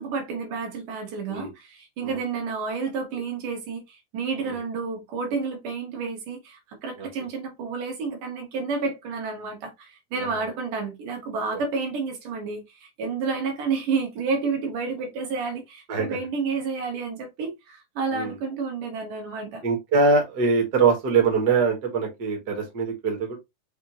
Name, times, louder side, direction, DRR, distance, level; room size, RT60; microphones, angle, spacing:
voice 1, 0.0-19.6, right 4 dB, 75° right, 2.9 m, -30 dB
voice 2, 19.6-23.4, right 4 dB, 45° right, 1.3 m, -23 dB
5.9 x 2.7 x 2.9 m
omnidirectional pair, 3.7 m